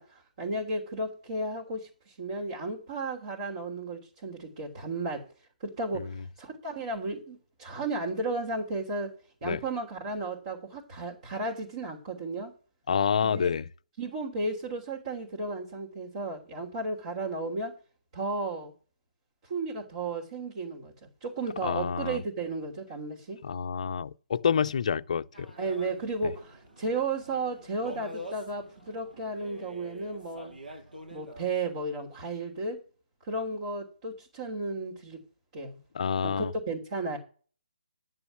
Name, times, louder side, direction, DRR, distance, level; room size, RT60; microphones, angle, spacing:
voice 1, 0.0-5.2 5.6-9.1 9.4-12.5 13.2-13.5 14.0-17.8 18.1-18.7 19.4-23.4 25.6-30.5 31.1-32.8 33.2-35.2 35.5-35.8 36.2-37.2, right 2 dB, 40° right, 3.1 m, -34 dB
voice 2, 12.9-13.7 21.6-22.2 23.4-25.5 35.9-36.5, left 7 dB, 50° left, 0.5 m, -28 dB
sound 1, 25.3-31.5, equal, 80° right, 6.5 m, -46 dB
11.0 x 7.0 x 7.4 m
figure-of-eight pair, 150°, 5 cm